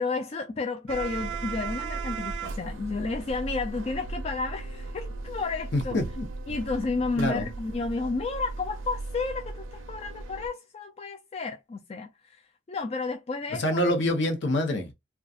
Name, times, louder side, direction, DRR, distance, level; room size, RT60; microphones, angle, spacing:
voice 1, 0.0-6.0 6.5-12.1 12.7-13.8, left 3 dB, 30° left, 0.3 m, -31 dB
sound 1, 0.9-10.5, right 3 dB, 85° right, 0.5 m, -36 dB
voice 2, 5.7-6.3 7.2-7.5 13.5-14.9, left 1 dB, 65° left, 0.7 m, -26 dB
2.4 x 2.2 x 2.6 m
head